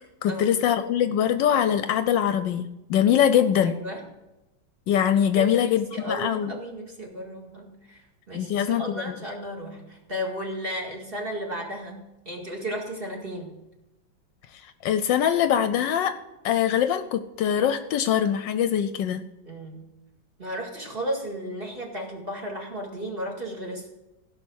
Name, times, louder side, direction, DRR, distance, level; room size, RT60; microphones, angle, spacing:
voice 1, 0.2-3.8 4.9-6.5 8.3-9.1 14.8-16.2 16.4-19.2, left 9 dB, 75° left, 11 dB, 1.2 m, -23 dB
voice 2, 3.7-4.0 5.3-12.0 12.3-13.5 19.4-19.8 20.4-23.9, equal, 30° right, 0 dB, 2.1 m, -34 dB
16.0 x 5.9 x 6.3 m, 0.96 s
omnidirectional pair, 2.1 m